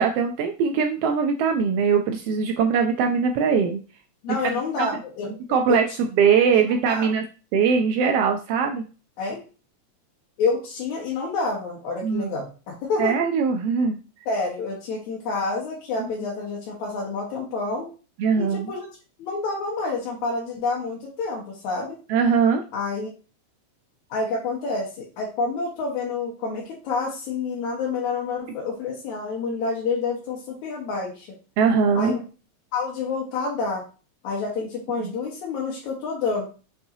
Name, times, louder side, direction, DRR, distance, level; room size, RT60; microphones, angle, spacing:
voice 1, 0.0-3.8 4.3-4.4 4.8-4.9 5.5-5.8 6.2-7.2 7.5-8.8 12.0-12.3 13.0-14.0 16.0-16.1 18.2-18.7 22.1-22.6 31.6-32.1 35.0-35.1, right 6 dB, 90° right, 4 dB, 1.3 m, -21 dB
voice 2, 4.2-5.8 6.3-7.1 9.2-9.4 10.4-13.1 14.3-17.9 18.4-18.9 19.2-22.0 22.7-23.1 24.1-31.3 31.9-32.2 32.7-33.8 34.2-36.4, left 4 dB, 80° left, -4 dB, 2.6 m, -28 dB
6.2 x 5.5 x 2.7 m, 0.35 s
omnidirectional pair, 3.3 m